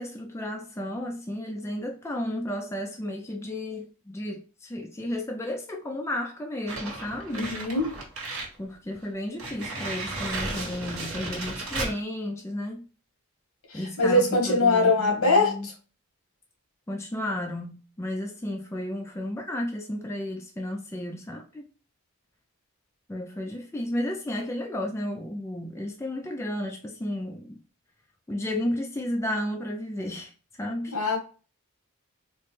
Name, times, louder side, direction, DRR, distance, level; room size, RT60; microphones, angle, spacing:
voice 1, 0.0-7.5 8.6-12.8 13.7-15.7 16.9-21.6 23.1-27.6 28.3-30.3 30.6-31.0, left 1 dB, 10° left, 0.4 m, -33 dB
sound 1, 6.7-8.6 8.9-9.0 9.4-12.0, right 2 dB, 70° right, 1.3 m, -34 dB
voice 2, 7.3-7.9 13.7-15.7 30.9-31.2, left 2 dB, 75° left, 1.4 m, -22 dB
4.1 x 2.1 x 3.2 m
head